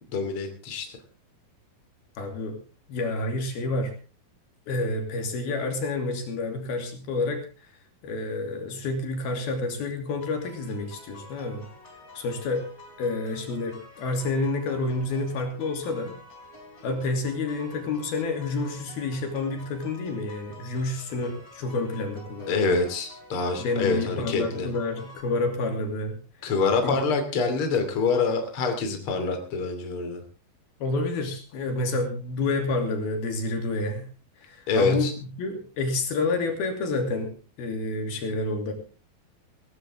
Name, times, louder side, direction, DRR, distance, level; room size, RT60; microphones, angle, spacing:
voice 1, 0.1-0.9 22.5-24.7 26.4-30.2 34.7-35.1, left 4 dB, 40° left, 5 dB, 3.3 m, -26 dB
voice 2, 2.2-2.6 2.9-3.9 4.7-7.4 8.0-11.7 12.1-12.7 13.0-16.1 16.8-22.6 23.6-26.2 26.8-27.0 30.8-34.1 34.4-37.3 37.6-38.7, left 3 dB, 80° left, 4 dB, 4.7 m, -29 dB
sound 1, 10.2-25.2, left 1 dB, 25° left, 4.2 m, -49 dB
17.5 x 17.0 x 3.6 m, 0.36 s
omnidirectional pair, 4.3 m